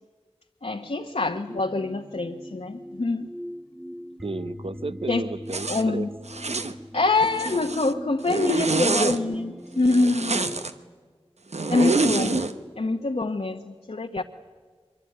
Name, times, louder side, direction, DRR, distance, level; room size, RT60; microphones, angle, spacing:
voice 1, 0.6-3.3 5.1-5.2 5.7-6.1 6.9-10.5 11.7-12.4 12.8-14.2, left 3 dB, 70° left, 3 dB, 1.1 m, -25 dB
sound 1, 1.5-10.8, equal, 5° right, 1.7 m, -40 dB
voice 2, 4.2-6.1 6.5-6.8 11.5-11.9, right 3 dB, 60° right, 15 dB, 0.8 m, -33 dB
Zipper (clothing), 5.5-5.8 6.3-6.7 7.2-7.9 8.3-9.2 9.8-10.7 11.5-12.5, right 3 dB, 90° right, 1.0 m, -26 dB
23.5 x 23.0 x 9.4 m, 1.5 s
wide cardioid pair, 40°, 11 cm